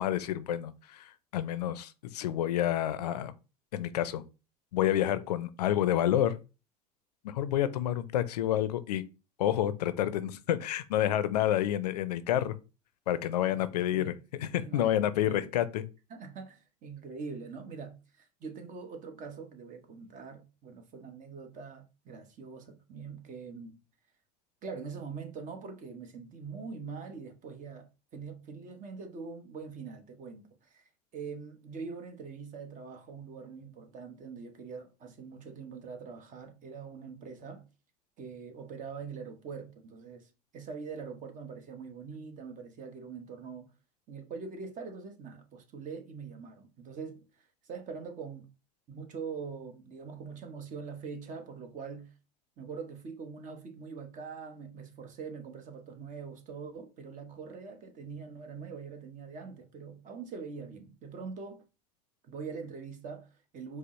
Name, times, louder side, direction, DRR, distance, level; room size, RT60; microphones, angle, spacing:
voice 1, 0.0-3.3 3.7-4.2 4.7-6.4 7.2-9.0 9.4-12.6 13.1-14.1 14.4-15.8, left 11 dB, 80° left, 0.4 m, -29 dB
voice 2, 13.7-14.1 14.6-15.5 16.1-23.8 24.6-37.6 38.2-43.7 44.1-48.5 48.9-52.1 52.6-61.6 62.2-63.8, right 5 dB, 40° right, 0.9 m, -43 dB
5.1 x 2.0 x 3.0 m
hypercardioid pair, 80°, 20 cm